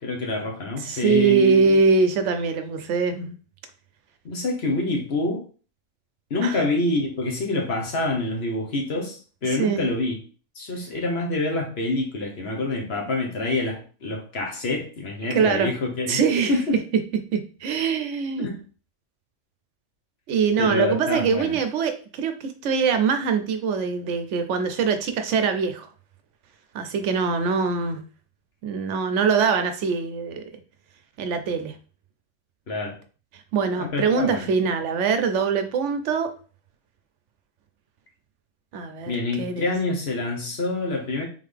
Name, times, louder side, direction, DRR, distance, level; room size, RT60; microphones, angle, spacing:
voice 1, 0.0-1.8 4.2-5.4 6.3-10.2 10.6-16.2 16.5-16.8 18.4-18.6 20.6-21.6 32.7-32.9 33.8-34.5 39.1-41.3, left 2 dB, 55° left, 2 dB, 1.2 m, -26 dB
voice 2, 0.8-3.4 6.4-6.6 9.5-9.8 15.3-15.7 16.1-16.5 17.3-18.5 20.3-25.9 26.7-28.0 28.6-30.4 31.2-31.8 33.3-36.3 38.7-39.7, right 5 dB, 70° right, 8 dB, 0.9 m, -23 dB
3.7 x 3.7 x 3.3 m, 0.39 s
omnidirectional pair, 1.3 m